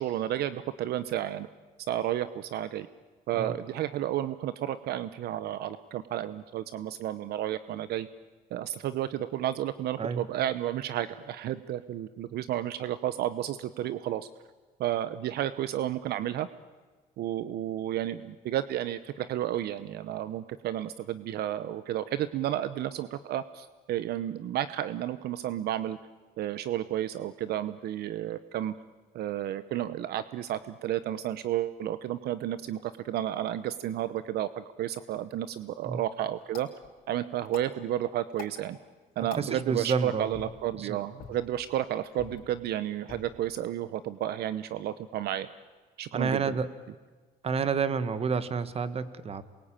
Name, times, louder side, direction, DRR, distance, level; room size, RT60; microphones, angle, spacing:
voice 1, 0.0-1.5 1.9-2.9 3.3-8.1 8.5-14.3 14.8-16.5 17.2-26.0 26.4-28.7 29.1-36.7 37.1-38.8 39.2-45.5 46.0-46.6, right 12 dB, 70° right, 14 dB, 0.9 m, -32 dB
sound 1, 35.5-45.4, left 6 dB, 60° left, 4.8 m, -51 dB
voice 2, 39.4-40.4 40.8-41.0 46.1-46.7 47.4-49.4, right 5 dB, 35° right, 13 dB, 1.6 m, -29 dB
27.5 x 22.5 x 9.0 m, 1.3 s
cardioid pair, 110°, 17 cm